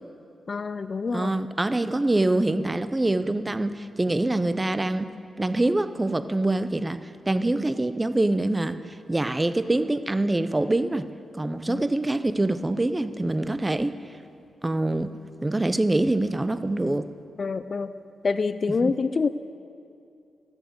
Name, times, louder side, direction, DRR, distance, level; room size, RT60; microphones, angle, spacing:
voice 1, 0.5-1.3 11.7-11.8 17.4-17.9 18.2-19.3, left 4 dB, 45° left, 12 dB, 0.3 m, -26 dB
voice 2, 1.1-5.1 5.4-7.0 7.3-11.1 11.3-14.0 14.6-15.1 15.4-17.1 18.8-19.0, right 2 dB, 20° right, 12 dB, 0.5 m, -25 dB
13.5 x 7.2 x 7.8 m, 2.5 s
cardioid pair, 85°, 0 cm